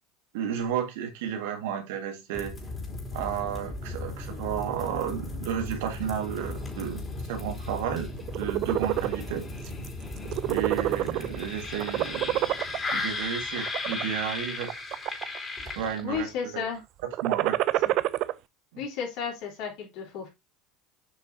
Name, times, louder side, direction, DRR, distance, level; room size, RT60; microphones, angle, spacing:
voice 1, 0.3-2.6 3.1-7.0 7.3-8.1 8.4-9.5 10.5-12.6 12.9-14.8 15.8-16.7 17.2-17.6 18.7-18.8, right 8 dB, 80° right, 1.9 m, -32 dB
sound 1, 2.3-16.2, left 2 dB, 25° left, 3.2 m, -36 dB
sound 2, 8.2-9.2 9.6-9.9 10.2-11.4 11.8-12.9 13.6-14.0 14.6-15.4 15.7-16.2 17.0-18.3, right 15 dB, 55° right, 0.5 m, -27 dB
voice 2, 16.0-16.8 18.8-20.3, left 6 dB, 70° left, 3.9 m, -33 dB
7.6 x 6.0 x 2.8 m
supercardioid pair, 100°, 0 cm